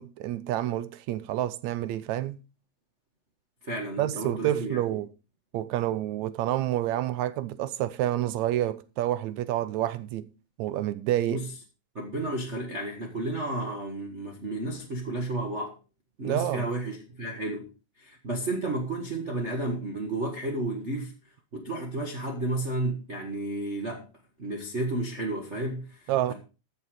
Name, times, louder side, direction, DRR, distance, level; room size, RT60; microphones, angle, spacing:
voice 1, 0.0-2.4 4.0-5.1 5.5-10.3 10.6-11.4 16.2-16.6 26.1-26.3, right 13 dB, 75° right, 2.0 m, -28 dB
voice 2, 3.6-4.8 11.3-11.5 11.9-15.7 16.2-17.7 18.0-21.1 21.5-24.1 24.4-26.3, right 2 dB, 30° right, 1.4 m, -32 dB
13.5 x 6.9 x 4.8 m
omnidirectional pair, 3.4 m